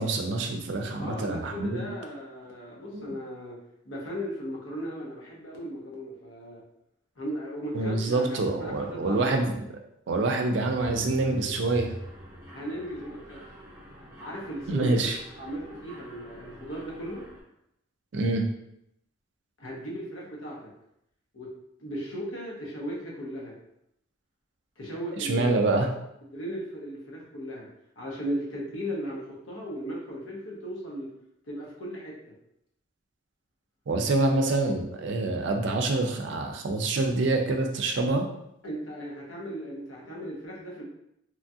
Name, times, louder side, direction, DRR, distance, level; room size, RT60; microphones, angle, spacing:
voice 1, 0.0-1.9 2.9-3.1 7.7-9.5 10.1-11.9 14.7-15.2 18.1-18.5 25.2-25.9 33.9-38.3, right 2 dB, 60° right, 3 dB, 0.4 m, -26 dB
voice 2, 1.0-3.6 3.8-6.6 7.2-9.6 12.5-13.4 14.2-15.1 15.4-17.2 19.6-20.7 21.3-21.5 21.8-23.6 24.8-25.6 26.3-27.7 28.0-31.1 31.5-32.1 38.6-40.8, equal, 80° left, -3 dB, 0.9 m, -36 dB
Mechanisms, 10.7-17.4, equal, 15° right, 0.6 m, -44 dB
3.0 x 2.3 x 2.6 m, 0.79 s
head